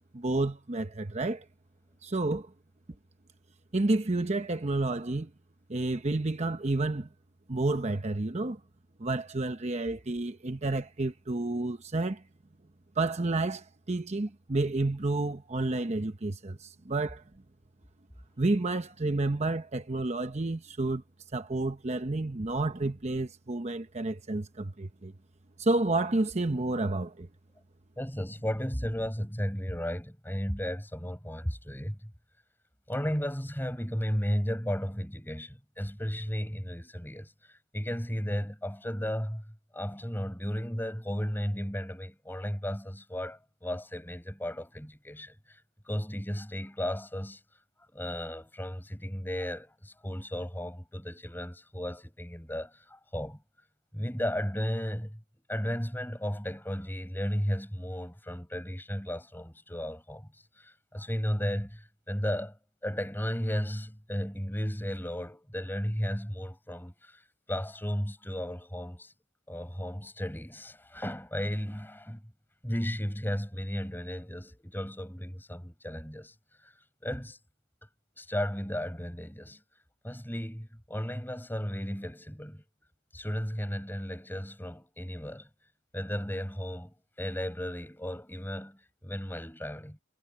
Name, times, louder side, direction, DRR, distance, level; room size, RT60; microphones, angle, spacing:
voice 1, 0.1-1.4 2.0-2.5 3.7-5.3 5.7-7.1 7.5-8.6 9.0-12.2 13.0-17.2 18.4-21.0 21.3-25.1 25.6-27.3, right 2 dB, 30° right, 0.9 m, -30 dB
voice 2, 28.0-32.1 32.9-47.4 47.9-53.4 53.9-55.2 55.5-60.3 60.6-62.6 62.8-69.1 69.5-72.3 72.6-76.3 76.6-76.7 77.0-77.4 78.2-79.6 80.0-82.6 83.1-85.5 85.9-90.0, equal, 10° left, 7.4 m, -34 dB
head